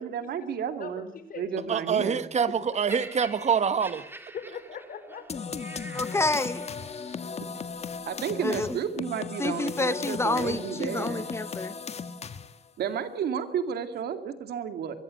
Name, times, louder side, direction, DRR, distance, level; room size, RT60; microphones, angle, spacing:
voice 1, 0.0-1.1 1.4-2.2 8.1-11.3 12.8-14.9, right 7 dB, 90° right, 9 dB, 2.4 m, -32 dB
voice 2, 0.8-2.1 4.3-5.4, left 6 dB, 65° left, 10 dB, 4.6 m, -41 dB
voice 3, 1.7-4.0, right 7 dB, 45° right, 13 dB, 1.3 m, -25 dB
Laughter, 2.9-7.1 7.9-8.1, right 1 dB, 15° right, 2.3 m, -46 dB
sound 1, 5.3-12.7, left 5 dB, 40° left, 1.6 m, -37 dB
voice 4, 5.9-6.7 8.4-8.8 9.4-11.7, left 2 dB, 15° left, 13 dB, 1.3 m, -28 dB
23.5 x 23.0 x 6.5 m, 0.70 s
cardioid pair, 110°, 16 cm